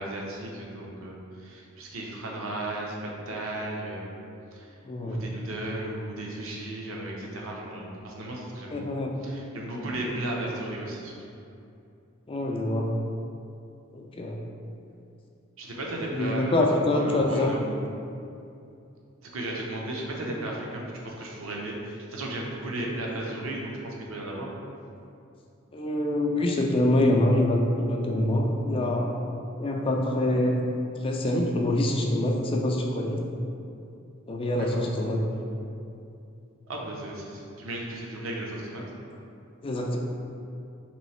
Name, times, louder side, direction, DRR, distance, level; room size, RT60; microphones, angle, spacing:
voice 1, 0.0-4.1 4.5-4.7 5.0-8.9 9.2-11.1 15.6-17.6 19.2-24.5 34.6-34.8 36.7-38.8, right 1 dB, 80° right, -2 dB, 0.7 m, -35 dB
voice 2, 4.8-5.3 8.7-9.2 12.3-13.0 13.9-14.4 16.1-17.5 25.7-29.1 29.6-30.6 31.0-33.2 34.3-35.2 39.6-40.0, left 1 dB, 25° left, 0 dB, 0.4 m, -25 dB
3.1 x 3.0 x 4.2 m, 2.6 s
head